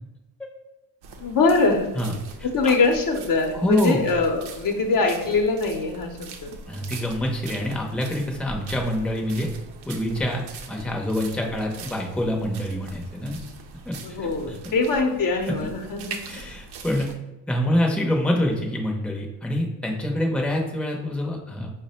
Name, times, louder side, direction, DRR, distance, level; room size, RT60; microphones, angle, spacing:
sound 1, 1.0-17.2, right 4 dB, 90° right, 0.6 m, -41 dB
voice 1, 1.2-1.9 2.4-6.5 14.0-16.2 17.6-17.7, left 3 dB, 55° left, 3 dB, 0.8 m, -23 dB
voice 2, 3.5-4.0 6.7-9.5 9.9-10.4 10.7-13.4 13.9-14.0 15.4-15.5 16.3-17.1 17.5-21.7, left 1 dB, 5° left, 0 dB, 0.7 m, -25 dB
4.6 x 2.1 x 4.2 m, 1.0 s
cardioid pair, 90°, 39 cm